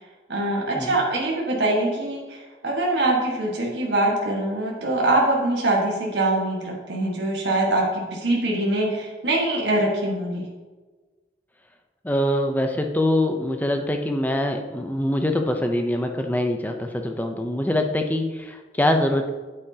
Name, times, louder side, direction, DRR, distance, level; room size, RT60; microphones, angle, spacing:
voice 1, 0.3-10.5, right 2 dB, 75° right, -2 dB, 1.5 m, -23 dB
voice 2, 12.0-19.3, left 1 dB, 10° left, 4 dB, 0.6 m, -24 dB
8.9 x 8.2 x 2.8 m, 1.3 s
head